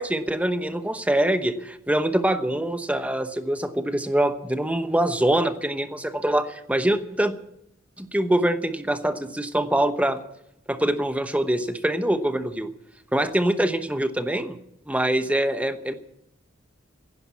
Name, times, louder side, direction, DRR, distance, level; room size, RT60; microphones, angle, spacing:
voice 1, 0.0-7.3 8.0-10.2 10.7-12.7 13.1-14.6 14.9-15.9, right 1 dB, 5° right, 9 dB, 0.9 m, -24 dB
16.0 x 11.0 x 8.3 m, 0.79 s
head